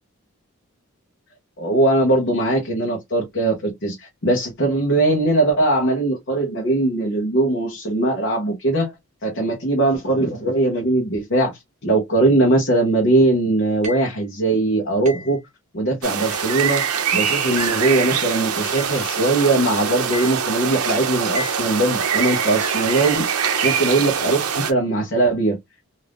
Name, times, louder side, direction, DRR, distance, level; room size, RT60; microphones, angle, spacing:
voice 1, 1.6-8.9 9.2-11.5 11.8-15.4 15.7-16.8 17.1-25.6, right 2 dB, 50° left, 0.9 m, -20 dB
sound 1, 13.8-14.2 15.0-15.4 16.3-16.6 17.6-17.9 18.7-19.0 20.1-20.4 21.3-21.7, left 1 dB, 30° right, 1.5 m, -34 dB
sound 2, 16.0-24.7, right 7 dB, 85° right, 0.6 m, -23 dB
3.5 x 2.6 x 2.4 m
head